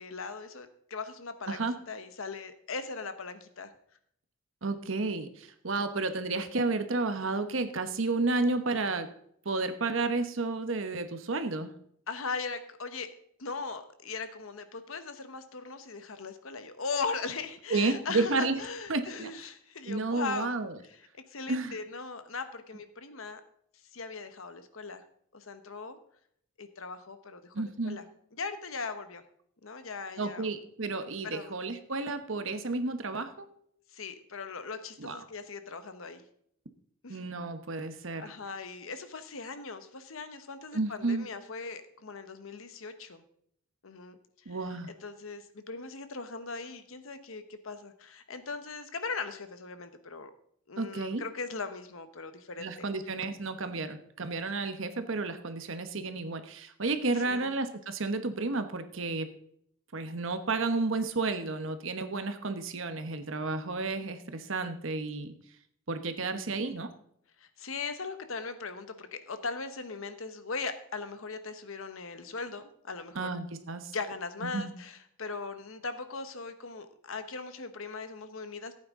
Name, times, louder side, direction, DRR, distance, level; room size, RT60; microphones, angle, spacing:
voice 1, 0.0-3.7 12.1-13.1 13.4-20.5 20.9-23.4 23.9-25.0 25.3-26.0 26.6-28.0 28.4-29.2 29.6-30.5 31.2-31.6 33.9-36.2 37.0-37.2 38.2-43.2 43.8-44.2 44.5-44.6 45.0-50.3 50.7-52.9 57.3-57.5 67.4-73.3 73.9-78.7, left 4 dB, 75° left, 10 dB, 1.1 m, -39 dB
voice 2, 4.6-9.1 9.4-11.7 17.7-18.6 18.9-19.3 19.9-20.8 21.5-21.8 27.5-28.0 30.2-33.5 35.0-35.2 37.1-38.2 40.7-41.3 44.5-44.9 50.8-51.2 52.6-59.3 59.9-65.3 65.9-66.9 73.1-73.9 74.4-74.7, right 3 dB, 65° right, 9 dB, 1.0 m, -31 dB
15.0 x 8.7 x 3.7 m, 0.69 s
head